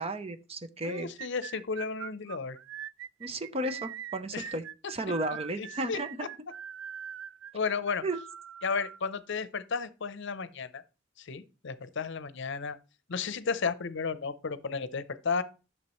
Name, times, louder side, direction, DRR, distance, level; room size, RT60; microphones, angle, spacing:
voice 1, 0.0-1.1 3.2-4.6 4.9-6.1 8.0-8.2, right 1 dB, 30° right, 0.7 m, -33 dB
voice 2, 0.8-2.6 4.3-4.5 5.6-6.3 7.5-8.0 8.6-10.8 11.2-12.8 13.1-15.4, left 5 dB, 65° left, 0.7 m, -33 dB
sound 1, 1.0-9.0, right 9 dB, 80° right, 0.3 m, -42 dB
11.5 x 6.6 x 3.1 m
head